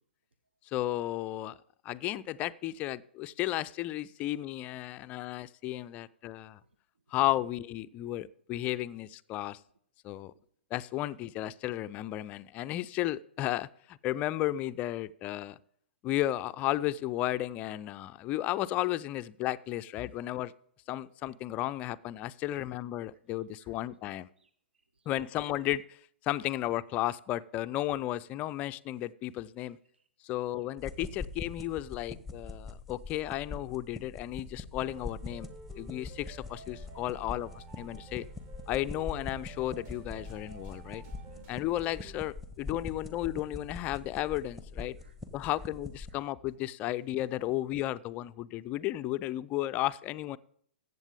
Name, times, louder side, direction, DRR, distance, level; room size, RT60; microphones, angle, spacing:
voice 1, 0.7-1.6 1.8-6.6 7.1-9.6 10.0-10.3 10.7-15.6 16.0-20.5 20.9-24.3 25.1-25.8 26.2-29.8 30.2-35.5 35.7-38.3 38.7-41.0 41.5-45.0 45.3-50.4, left 15 dB, 25° left, 15 dB, 0.3 m, -34 dB
voice 2, 29.6-30.1 30.6-30.7 41.0-41.6 45.0-45.2 45.5-45.6, right 4 dB, 70° right, 10 dB, 0.7 m, -64 dB
sound 1, 30.8-46.1, left 3 dB, ahead, 0.8 m, -43 dB
sound 2, 34.8-42.1, right 5 dB, 30° right, 1.3 m, -51 dB
14.5 x 7.9 x 3.5 m, 0.65 s
figure-of-eight pair, 110°, 6 cm